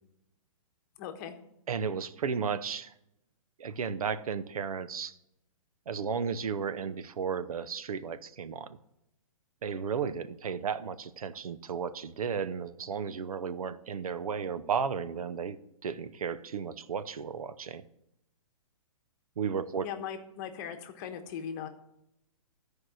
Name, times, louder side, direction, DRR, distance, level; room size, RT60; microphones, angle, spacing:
voice 1, 1.0-1.3 19.8-21.7, left 8 dB, 30° left, 6 dB, 1.1 m, -39 dB
voice 2, 1.7-2.9 3.6-5.1 5.9-8.8 9.6-15.6 15.8-17.8 19.4-19.9, right 6 dB, 85° right, 13 dB, 0.8 m, -34 dB
13.0 x 4.8 x 6.2 m, 0.81 s
hypercardioid pair, 155°, 18 cm